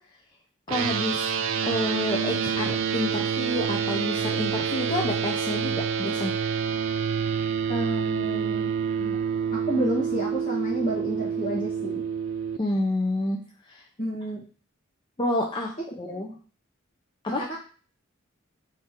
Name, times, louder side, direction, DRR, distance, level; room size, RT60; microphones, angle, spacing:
voice 1, 0.7-1.3 1.6-6.3 12.6-13.4 13.7-13.8 15.2-15.7 16.0-16.3 17.2-17.5, left 1 dB, 25° left, -1 dB, 0.5 m, -29 dB
sound 1, 0.7-12.6, right 7 dB, 65° right, 0.4 m, -27 dB
voice 2, 7.7-8.7 9.0-9.2 9.5-12.0 14.0-14.4 16.1-16.2, right 1 dB, 40° left, -8 dB, 1.4 m, -30 dB
3.6 x 3.2 x 4.3 m, 0.40 s
head